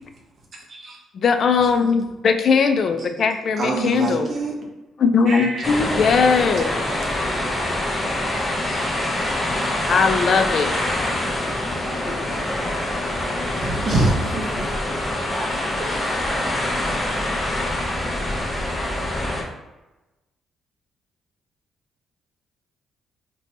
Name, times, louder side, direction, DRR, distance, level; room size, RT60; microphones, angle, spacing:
voice 1, 1.1-4.3 5.0-6.7 9.9-10.8, left 5 dB, 55° left, 7 dB, 0.3 m, -19 dB
voice 2, 3.6-4.5 5.3-5.7 9.8-9.9 13.5-14.7 15.8-16.0, right 2 dB, 50° right, -1 dB, 0.7 m, -25 dB
sound 1, 5.6-19.4, left 1 dB, 25° left, 0.7 m, -25 dB
voice 3, 11.7-13.9 15.1-16.3, right 1 dB, 5° right, -8 dB, 0.8 m, -38 dB
2.6 x 2.2 x 4.1 m, 1.0 s
cardioid pair, 90°, 0 cm